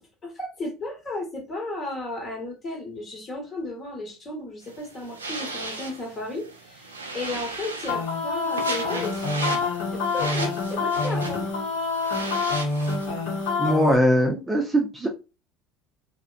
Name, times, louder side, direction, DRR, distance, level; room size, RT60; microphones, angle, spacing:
voice 1, 0.2-9.3 9.9-11.4, left 2 dB, 35° left, 1.3 m, -34 dB
sound 1, 4.6-13.5, right 3 dB, 90° right, 0.4 m, -36 dB
sound 2, 7.9-14.0, left 3 dB, 65° left, 0.8 m, -27 dB
voice 2, 13.6-15.1, equal, 10° right, 0.6 m, -21 dB
2.4 x 2.1 x 2.4 m
hypercardioid pair, 70°, 0 cm